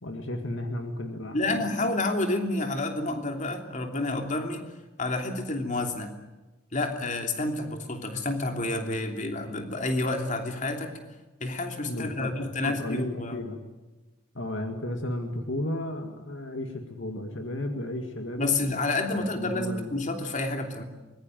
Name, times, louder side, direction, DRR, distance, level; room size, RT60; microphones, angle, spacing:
voice 1, 0.0-1.6 11.9-13.6 14.3-18.5 19.1-19.9, left 1 dB, 55° left, 5 dB, 2.1 m, -34 dB
voice 2, 1.3-4.6 5.0-6.1 6.7-10.9 11.4-13.4 18.4-20.8, left 2 dB, 35° left, 4 dB, 3.0 m, -29 dB
24.5 x 21.5 x 9.2 m, 1.1 s
head